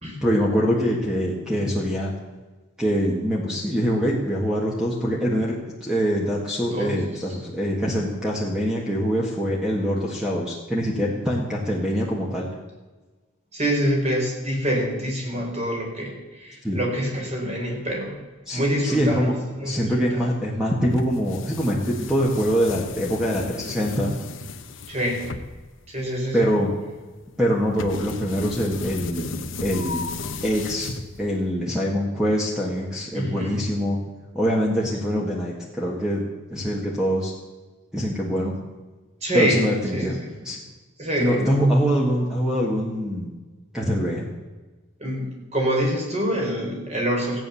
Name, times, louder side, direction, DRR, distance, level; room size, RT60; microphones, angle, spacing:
voice 1, 0.2-2.1 2.8-12.5 16.6-16.8 18.5-19.3 19.6-24.1 26.3-26.7 27.4-30.0 30.4-30.9 31.2-34.0 34.3-36.2 36.5-37.3 37.9-38.5 39.3-40.6 41.2-43.3 43.7-44.3, equal, 5° right, -3 dB, 1.8 m, -24 dB
voice 2, 13.5-18.1 18.5-20.2 24.9-25.2 25.9-26.5 33.1-33.6 39.2-39.7 39.9-40.3 41.0-41.6 45.0-47.4, equal, 30° right, -1 dB, 4.2 m, -26 dB
sound 1, 20.9-31.5, left 3 dB, 65° left, 1.0 m, -35 dB
15.5 x 9.1 x 7.0 m, 1.2 s
head